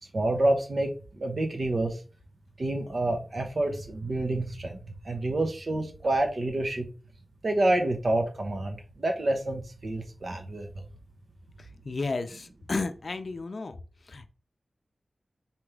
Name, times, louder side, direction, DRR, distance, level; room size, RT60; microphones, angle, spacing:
voice 1, 0.1-2.0 2.6-6.9 7.4-10.8, right 1 dB, 50° right, 4 dB, 1.0 m, -28 dB
voice 2, 11.9-13.8 14.1-14.3, left 3 dB, 55° left, 9 dB, 0.5 m, -32 dB
4.3 x 3.5 x 3.3 m, 0.35 s
wide cardioid pair, 105°, 0 cm